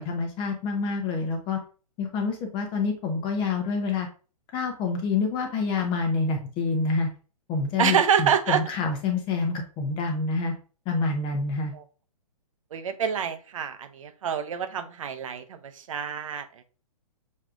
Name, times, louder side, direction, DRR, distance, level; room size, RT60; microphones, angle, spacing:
voice 1, 0.0-1.6 2.0-4.1 4.5-7.1 7.5-10.5 10.9-11.7, left 4 dB, 25° left, 4 dB, 0.8 m, -27 dB
voice 2, 7.8-8.6 11.7-11.8 12.7-16.5, right 8 dB, 55° right, 9 dB, 0.8 m, -26 dB
6.4 x 3.3 x 2.5 m, 0.36 s
figure-of-eight pair, 120°, 20 cm